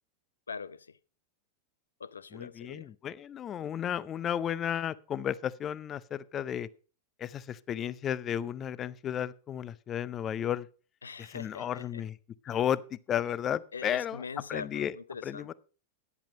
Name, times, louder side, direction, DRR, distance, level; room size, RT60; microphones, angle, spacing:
voice 1, 0.5-1.0 2.0-2.9 11.0-12.0 12.5-12.6 13.7-15.5, left 5 dB, 75° left, 0.5 m, -42 dB
voice 2, 2.3-6.7 7.2-10.7 11.3-12.1 12.4-14.2 14.5-14.9 15.2-15.5, left 9 dB, 25° left, 0.5 m, -33 dB
10.5 x 8.4 x 5.3 m
figure-of-eight pair, 90°, 0 cm